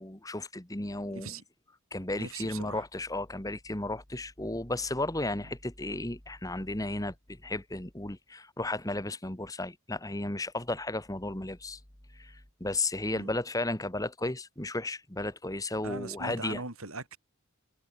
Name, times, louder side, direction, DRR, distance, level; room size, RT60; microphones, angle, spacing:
voice 1, 0.0-1.3 1.9-11.8 12.1-16.6, left 2 dB, 15° left, 1.7 m, -34 dB
voice 2, 1.1-1.4 2.2-2.9 13.1-13.3 15.8-17.2, right 3 dB, 85° right, 5.9 m, -40 dB
head